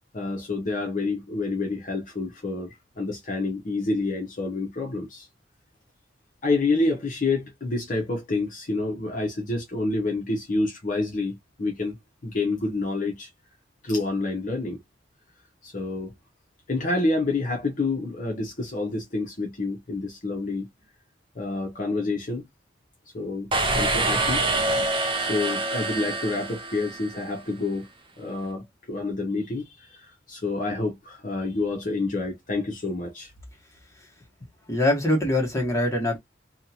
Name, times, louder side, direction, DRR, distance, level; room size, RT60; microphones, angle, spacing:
voice 1, 0.1-5.3 6.4-12.0 12.2-13.3 13.8-14.8 15.6-16.1 16.7-20.7 21.3-22.4 23.1-24.4 25.2-27.9 28.2-33.3, left 3 dB, 45° left, 0.7 m, -28 dB
sound 1, 23.5-27.3, right 2 dB, 30° right, 0.6 m, -26 dB
voice 2, 34.7-36.2, left 1 dB, 15° left, 1.2 m, -23 dB
2.7 x 2.3 x 2.7 m
head